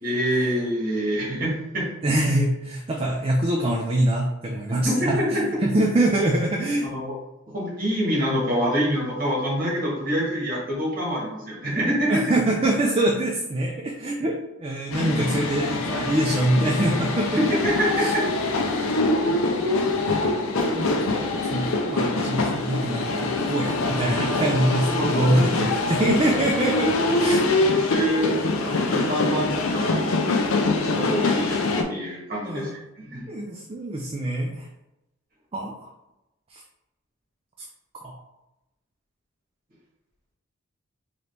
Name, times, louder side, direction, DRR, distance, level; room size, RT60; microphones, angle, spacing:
voice 1, 0.0-1.9 4.8-5.3 6.8-7.1 7.5-12.2 17.3-18.2 25.0-25.5 27.7-31.6 31.9-33.2, equal, 45° right, -4 dB, 1.5 m, -26 dB
voice 2, 2.0-6.9 12.1-17.3 18.0-18.1 20.6-21.0 21.5-27.6 32.4-32.7 33.3-34.7 35.5-35.9 36.5-36.6 38.0-38.2, right 1 dB, 25° right, -1 dB, 0.4 m, -24 dB
sound 1, 14.9-31.8, left 2 dB, 85° left, 0.6 m, -24 dB
3.9 x 3.0 x 3.3 m, 0.93 s
head